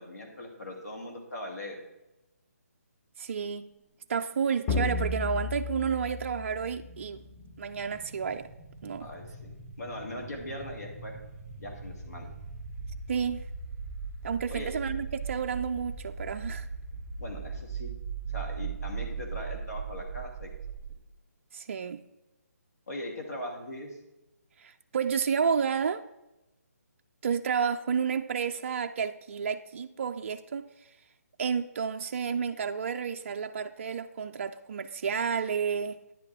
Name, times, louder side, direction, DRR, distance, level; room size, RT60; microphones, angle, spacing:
voice 1, 0.0-1.8 9.0-11.2 11.6-12.3 14.5-14.7 17.2-17.9 18.3-20.5 22.9-24.0, left 1 dB, 75° left, 2.4 m, -40 dB
voice 2, 3.2-3.7 4.1-7.2 7.6-8.5 8.8-9.1 13.1-13.4 14.2-16.7 21.5-22.0 24.6-26.0 27.2-30.6 31.4-36.0, right 6 dB, 50° right, 0.3 m, -31 dB
sound 1, 4.7-7.3, left 3 dB, 15° left, 0.6 m, -33 dB
sound 2, 6.7-20.9, right 5 dB, 10° right, 1.4 m, -40 dB
9.8 x 8.2 x 3.4 m
hypercardioid pair, 155°, 9 cm